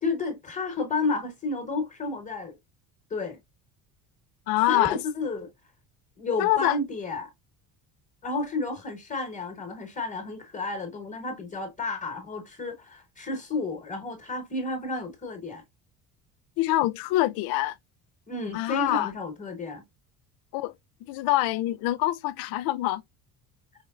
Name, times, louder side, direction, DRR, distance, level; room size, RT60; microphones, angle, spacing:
voice 1, 0.0-2.5 3.1-3.4 4.7-5.5 6.2-7.3 8.2-15.6 18.3-19.8, left 3 dB, 20° left, 1.0 m, -31 dB
voice 2, 4.5-5.0 6.4-6.8 16.6-17.7 18.5-19.1 20.5-20.7 21.0-23.0, left 16 dB, 70° left, 0.5 m, -25 dB
4.7 x 3.0 x 2.3 m
cardioid pair, 120°, 36 cm